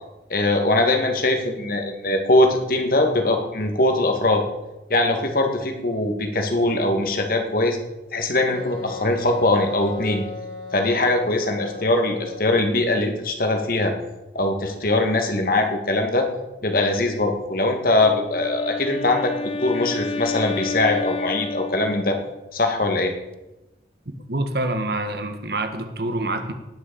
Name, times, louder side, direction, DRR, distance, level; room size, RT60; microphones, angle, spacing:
voice 1, 0.3-4.4 4.9-7.8 8.1-10.2 10.7-13.9 14.3-16.3 16.6-19.3 19.6-22.2 22.5-23.1, left 2 dB, 55° left, 4 dB, 2.1 m, -21 dB
Wind instrument woodwind instrument, 8.5-13.2, left 3 dB, 80° left, 6.5 m, -37 dB
Wind instrument woodwind instrument 2, 17.9-22.5, left 3 dB, 30° left, 0.7 m, -30 dB
voice 2, 24.3-26.5, right 2 dB, 60° right, 7 dB, 1.6 m, -26 dB
18.5 x 6.6 x 7.0 m, 0.98 s
head